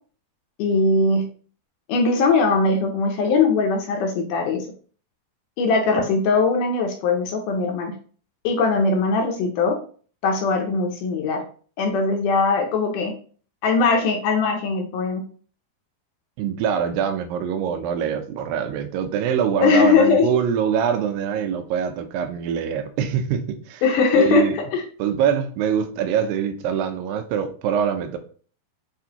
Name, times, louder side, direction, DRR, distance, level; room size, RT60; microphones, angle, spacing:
voice 1, 0.6-1.3 1.9-4.7 5.6-7.9 8.4-9.8 10.2-11.4 11.8-13.1 13.6-15.2 19.6-20.3 23.8-24.8, left 4 dB, 80° left, 2.0 m, -20 dB
voice 2, 16.4-23.8 24.1-24.6 25.0-28.2, right 8 dB, 85° right, 2.3 m, -24 dB
6.6 x 2.5 x 2.8 m
omnidirectional pair, 4.1 m